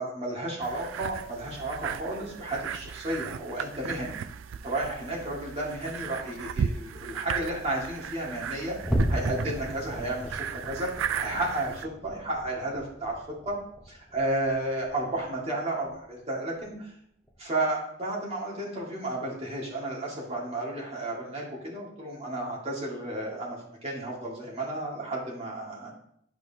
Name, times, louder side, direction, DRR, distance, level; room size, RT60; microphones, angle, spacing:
voice 1, 0.0-4.2 4.6-8.8 9.1-10.9 11.2-13.6 13.9-16.9 17.4-25.9, right 1 dB, 35° right, -3 dB, 2.1 m, -32 dB
sound 1, 0.6-11.9, right 7 dB, 85° right, 0.3 m, -36 dB
sound 2, 8.8-15.5 15.8-16.1 16.6-16.7 17.3-17.4, equal, ahead, 0.8 m, -35 dB
11.0 x 4.7 x 2.8 m, 0.70 s
head